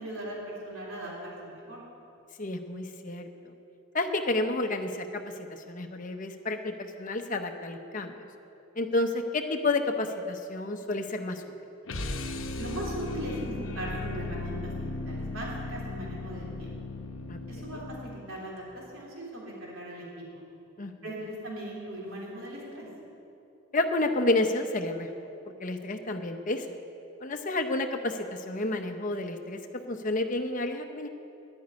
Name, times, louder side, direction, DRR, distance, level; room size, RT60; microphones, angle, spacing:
voice 1, 0.0-1.8 12.6-16.7 17.5-20.4 21.0-22.9, right 1 dB, 75° right, -4 dB, 3.4 m, -39 dB
voice 2, 2.4-3.3 3.9-5.2 5.5-8.3 8.8-11.5 17.3-17.4 20.8-20.9 23.7-25.3 25.6-26.7 27.2-31.1, left 2 dB, 40° left, 5 dB, 0.8 m, -30 dB
sound 1, 11.9-18.3, left 2 dB, 65° left, 0.9 m, -36 dB
10.5 x 9.3 x 9.5 m, 2.9 s
head